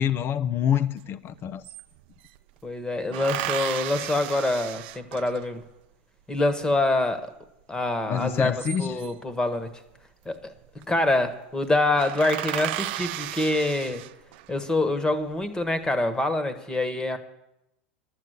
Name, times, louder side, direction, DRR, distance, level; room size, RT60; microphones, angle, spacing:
voice 1, 0.0-1.6 3.0-3.2 8.1-9.0, left 9 dB, 35° left, 16 dB, 0.6 m, -26 dB
sound 1, 1.0-1.1 1.3-2.4 3.1-5.6 8.3-9.3 10.5-10.8 11.1-11.3 11.6-11.7 12.0-14.5 15.1-15.8, right 16 dB, 65° right, 0.5 m, -34 dB
voice 2, 2.6-5.6 6.3-7.3 7.7-9.7 10.2-10.5 10.9-14.0 14.5-17.2, left 2 dB, 10° left, 11 dB, 1.4 m, -25 dB
11.5 x 7.8 x 8.2 m, 0.85 s
hypercardioid pair, 110°, 6 cm